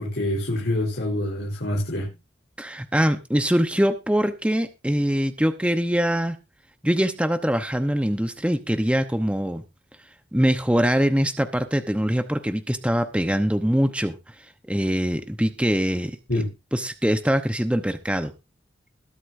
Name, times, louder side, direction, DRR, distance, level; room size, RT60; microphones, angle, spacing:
voice 1, 0.0-2.1 16.3-16.5, left 1 dB, 70° left, -3 dB, 4.0 m, -26 dB
voice 2, 2.6-6.4 6.8-9.6 10.3-14.3 14.7-16.4 16.7-18.3, equal, 5° right, 7 dB, 0.8 m, -23 dB
21.0 x 8.2 x 2.6 m, 0.26 s
head